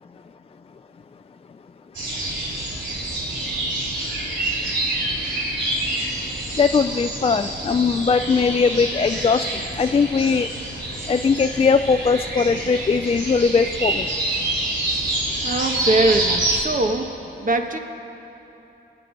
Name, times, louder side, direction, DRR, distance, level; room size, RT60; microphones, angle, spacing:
sound 1, 1.9-16.6, right 1 dB, 85° right, 3.3 m, -27 dB
voice 1, 6.6-10.5 11.1-14.1, left 5 dB, 35° left, 8 dB, 0.4 m, -20 dB
voice 2, 15.4-17.1 17.4-17.8, right 2 dB, 50° right, 4 dB, 1.3 m, -21 dB
26.0 x 9.0 x 5.3 m, 3.0 s
wide cardioid pair, 95°, 18 cm